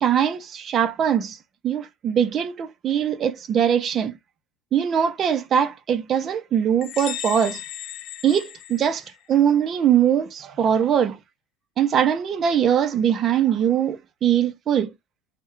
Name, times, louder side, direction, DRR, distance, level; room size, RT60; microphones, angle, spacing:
voice 1, 0.0-1.4 1.6-4.1 4.7-7.6 8.2-9.0 9.3-11.2 11.8-14.9, right 9 dB, 35° right, 0.4 m, -21 dB
sound 1, 6.8-9.4, left 11 dB, 50° left, 0.3 m, -36 dB
2.2 x 2.0 x 2.9 m
cardioid pair, 145°, 0 cm